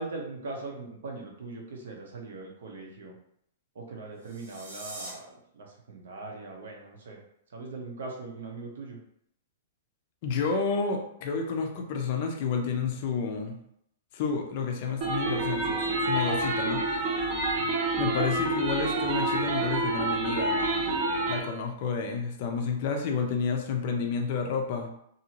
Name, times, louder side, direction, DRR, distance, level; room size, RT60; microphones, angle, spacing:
voice 1, 0.0-3.1 3.7-5.3 5.5-7.2 7.5-9.0, right 3 dB, 75° right, 0 dB, 0.8 m, -40 dB
sound 1, 4.1-5.1, right 1 dB, 45° right, 0.9 m, -42 dB
voice 2, 10.2-13.5 14.1-16.9 18.0-24.9, left 5 dB, 35° left, 3 dB, 0.4 m, -30 dB
sound 2, 15.0-21.4, right 2 dB, 30° right, 0.4 m, -28 dB
2.6 x 2.5 x 2.9 m, 0.71 s
hypercardioid pair, 180°, 0 cm